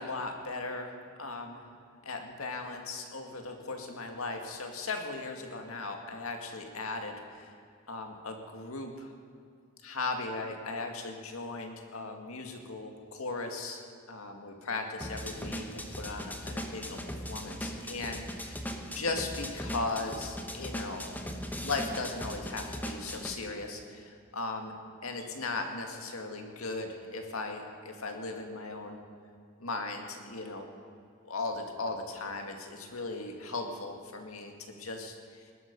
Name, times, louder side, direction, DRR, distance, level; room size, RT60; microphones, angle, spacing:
voice 1, 0.0-1.6 2.0-7.6 7.9-9.1 9.8-17.0 17.3-18.7 18.9-21.1 21.6-24.7 25.0-29.0 29.6-30.7 31.2-34.5 34.8-35.4, left 3 dB, 75° left, 4 dB, 2.0 m, -37 dB
sound 1, 15.0-23.4, equal, 10° left, 1.1 m, -39 dB
20.0 x 12.0 x 5.4 m, 2.4 s
head